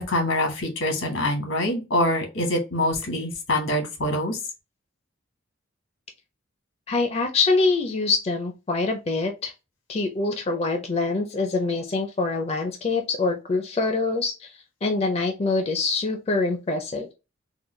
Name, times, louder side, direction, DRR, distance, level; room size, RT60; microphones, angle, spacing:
voice 1, 0.0-4.4, left 1 dB, 80° left, 3 dB, 1.3 m, -25 dB
voice 2, 6.9-9.5 9.9-14.5 14.8-17.1, left 3 dB, 30° left, 4 dB, 0.4 m, -25 dB
3.8 x 2.2 x 3.1 m, 0.27 s
head